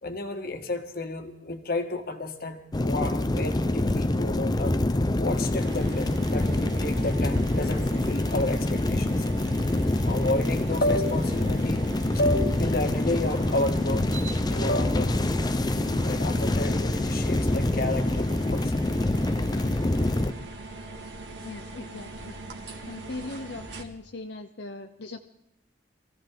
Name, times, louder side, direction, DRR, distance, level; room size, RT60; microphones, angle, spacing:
voice 1, 0.0-4.8 5.2-9.1 10.1-11.8 12.1-14.1 14.5-15.2 16.0-18.7, left 2 dB, 55° left, 6 dB, 1.7 m, -31 dB
sound 1, 2.7-20.3, left 1 dB, 25° left, 0.6 m, -26 dB
sound 2, 5.6-23.8, right 2 dB, 75° right, 2.1 m, -41 dB
voice 2, 21.4-22.4 22.9-25.2, left 2 dB, 85° left, 4 dB, 0.9 m, -39 dB
23.5 x 15.5 x 3.9 m, 0.82 s
head